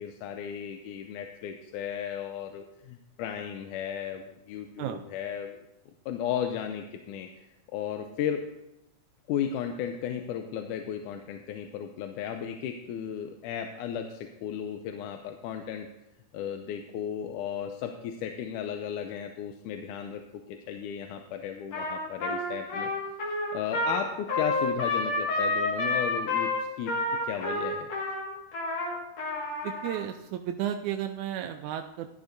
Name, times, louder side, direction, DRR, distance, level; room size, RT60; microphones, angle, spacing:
voice 1, 0.0-5.6 6.1-7.5 7.7-8.4 9.3-15.9 16.3-20.2 20.5-22.9 23.5-26.9 27.2-27.9, left 9 dB, 90° left, 6 dB, 2.1 m, -35 dB
Trumpet, 21.7-30.0, left 2 dB, 60° left, 2.9 m, -29 dB
voice 2, 29.6-32.1, right 11 dB, 80° right, 6 dB, 2.0 m, -33 dB
14.5 x 11.5 x 2.6 m, 0.92 s
omnidirectional pair, 3.5 m